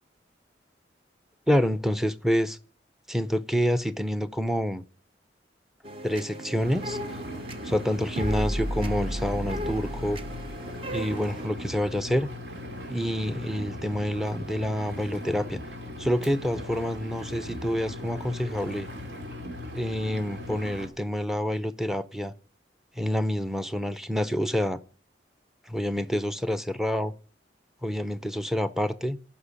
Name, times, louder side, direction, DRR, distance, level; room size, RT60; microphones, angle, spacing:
voice 1, 1.5-2.6 3.1-4.8 6.0-7.0 7.7-10.2 10.9-12.3 12.9-15.6 16.0-18.9 19.7-22.3 23.0-24.8 25.7-27.1 27.8-29.2, equal, ahead, 0.6 m, -27 dB
sound 1, 5.8-11.5, equal, 30° right, 0.8 m, -34 dB
Engine, 6.6-20.9, left 1 dB, 75° right, 2.7 m, -39 dB
13.5 x 5.7 x 8.5 m
head